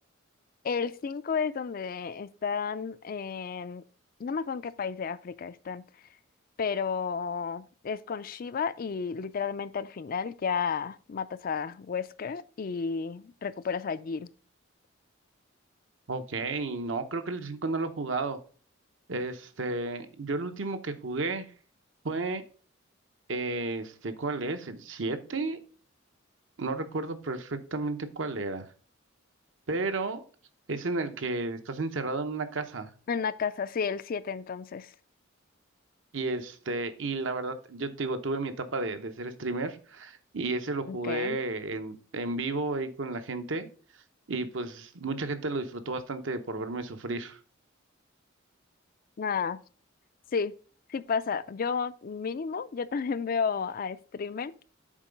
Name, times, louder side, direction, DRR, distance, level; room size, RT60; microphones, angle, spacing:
voice 1, 0.6-3.8 4.2-5.8 6.6-14.3 33.1-34.9 40.9-41.4 49.2-49.6 50.3-50.5 50.9-54.5, left 6 dB, 45° left, 0.4 m, -32 dB
voice 2, 16.1-18.4 19.1-21.5 22.0-22.4 23.3-25.6 26.6-28.6 29.7-30.2 30.7-32.9 36.1-43.7 44.3-47.4, right 3 dB, 65° right, 0.9 m, -32 dB
7.4 x 4.6 x 5.1 m
head